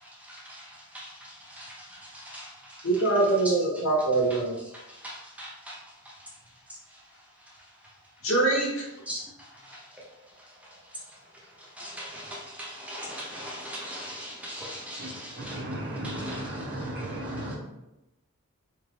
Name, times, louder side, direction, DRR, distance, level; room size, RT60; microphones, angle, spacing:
voice 1, 0.3-2.8 3.4-3.5 4.7-5.8 9.1-9.2 9.6-9.8 11.8-15.6 16.0-17.1 17.4-17.5, equal, 5° right, 0.6 m, -40 dB
voice 2, 2.8-4.5 8.2-8.8, right 2 dB, 65° left, 1.5 m, -23 dB
voice 3, 15.0-17.6, right 1 dB, 50° right, 1.0 m, -35 dB
4.4 x 2.6 x 3.2 m
head